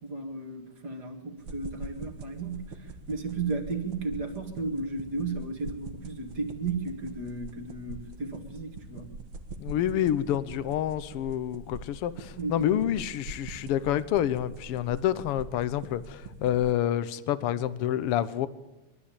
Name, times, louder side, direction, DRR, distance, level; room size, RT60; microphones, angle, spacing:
voice 1, 0.0-9.1 12.4-12.9, right 3 dB, 35° right, 2.4 m, -34 dB
sound 1, 1.4-16.7, right 3 dB, 65° right, 2.6 m, -44 dB
voice 2, 9.6-18.5, left 11 dB, 70° left, 1.4 m, -28 dB
23.5 x 12.5 x 8.7 m
omnidirectional pair, 3.4 m